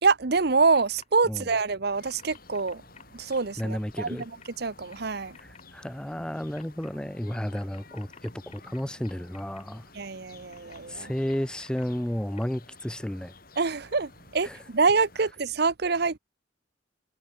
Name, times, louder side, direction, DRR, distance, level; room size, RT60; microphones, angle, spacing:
voice 1, 0.0-2.8 3.1-4.3 4.6-5.4 9.9-11.1 13.6-16.2, right 4 dB, 55° right, 0.9 m, -26 dB
sound 1, 0.7-1.1 1.3-1.6 2.0-3.7 4.2-4.5 4.9-5.6 6.5-6.9 7.5-9.6 10.5-11.8 12.4-12.5, left 6 dB, 35° left, 1.4 m, -52 dB
sound 2, 1.9-15.3, left 3 dB, 50° left, 4.7 m, -53 dB
voice 2, 3.6-4.3 5.4-9.8 10.9-13.3 14.4-14.6, equal, 5° left, 0.4 m, -32 dB
head